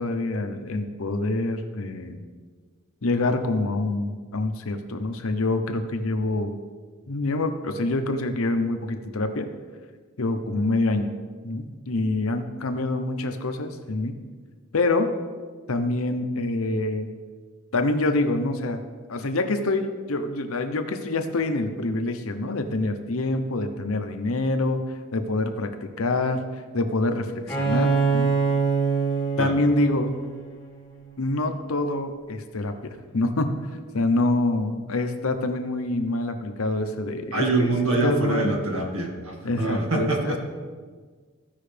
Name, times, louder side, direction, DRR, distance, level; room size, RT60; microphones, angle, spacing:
voice 1, 0.0-2.2 3.0-6.5 7.1-9.5 10.2-11.1 11.4-14.2 14.7-15.1 15.7-17.1 17.7-18.8 19.1-24.8 25.1-26.4 26.7-28.3 29.4-30.1 31.2-33.6 33.9-37.7 38.0-38.6 39.4-40.4, left 2 dB, 90° left, 7 dB, 0.8 m, -26 dB
Bowed string instrument, 27.5-31.1, right 5 dB, 5° left, 1.7 m, -25 dB
voice 2, 37.3-40.4, right 2 dB, 85° right, 1 dB, 1.7 m, -25 dB
15.0 x 5.6 x 3.4 m, 1.5 s
head